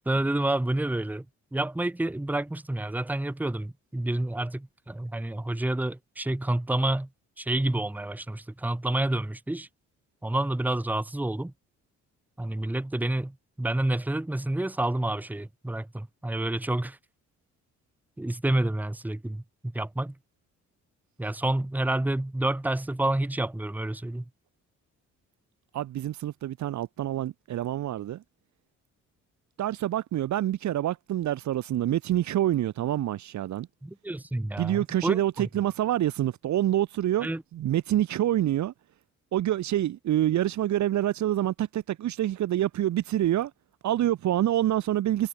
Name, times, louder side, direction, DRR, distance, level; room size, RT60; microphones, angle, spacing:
voice 1, 0.1-1.2 1.5-7.1 7.4-9.7 10.2-11.5 12.4-17.0 18.2-19.4 19.7-20.1 21.2-24.2 33.8-35.2 37.2-37.4, right 1 dB, 5° right, 1.1 m, -29 dB
voice 2, 25.7-28.2 29.6-33.7 34.6-38.7 39.3-43.5 43.8-45.3, right 12 dB, 70° right, 1.3 m, -27 dB
cardioid pair, 90°, 30 cm